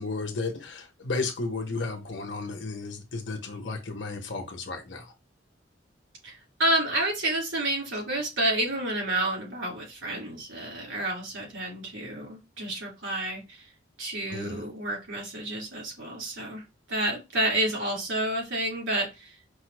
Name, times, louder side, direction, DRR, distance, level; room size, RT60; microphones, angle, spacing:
voice 1, 0.0-5.0 14.3-14.6, left 3 dB, 70° left, 1.0 m, -33 dB
voice 2, 6.2-13.7 14.0-19.4, right 1 dB, 90° right, 2.6 m, -30 dB
5.3 x 2.0 x 3.2 m
head